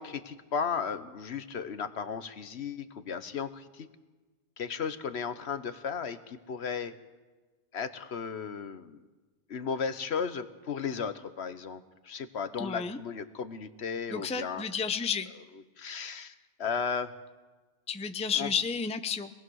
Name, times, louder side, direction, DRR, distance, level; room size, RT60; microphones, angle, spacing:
voice 1, 0.0-3.9 4.6-6.9 7.7-9.0 9.5-14.6 15.8-16.3 16.6-17.1 18.4-18.5, left 6 dB, 60° left, 12 dB, 1.2 m, -35 dB
voice 2, 12.6-13.0 14.1-15.3 17.9-19.3, left 6 dB, 5° left, 8 dB, 0.6 m, -31 dB
24.5 x 19.0 x 6.3 m, 1.3 s
omnidirectional pair, 1.3 m